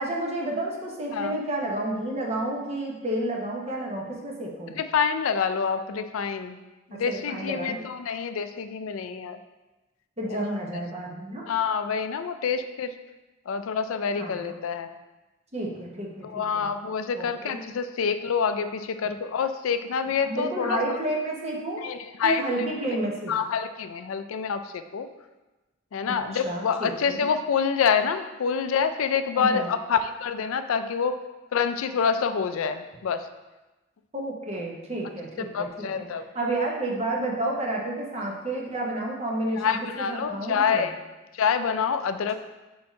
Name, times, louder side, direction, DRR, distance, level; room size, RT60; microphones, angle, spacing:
voice 1, 0.0-4.8 6.9-7.8 10.2-11.5 14.1-14.4 15.5-16.7 17.2-17.6 20.2-21.8 22.2-23.3 26.1-27.2 29.3-29.7 34.1-36.1 36.3-40.8, right 1 dB, 30° right, -2 dB, 1.0 m, -31 dB
voice 2, 4.7-6.6 6.9-9.4 10.3-10.4 11.5-12.9 13.5-14.9 16.3-20.8 21.8-22.7 23.3-25.1 25.9-31.2 31.5-33.2 35.4-36.3 39.6-40.9 41.4-42.3, left 6 dB, 80° left, 10 dB, 0.4 m, -27 dB
4.7 x 4.4 x 5.2 m, 1.1 s
head